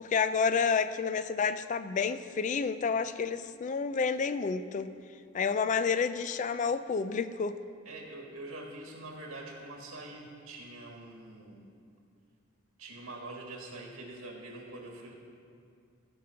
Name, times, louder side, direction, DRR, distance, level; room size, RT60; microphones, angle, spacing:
voice 1, 0.0-4.9 5.3-7.6, left 5 dB, 35° left, 12 dB, 0.3 m, -29 dB
voice 2, 7.8-11.7 12.8-15.1, right 2 dB, 90° right, 0 dB, 1.7 m, -44 dB
15.5 x 5.2 x 5.7 m, 2.3 s
head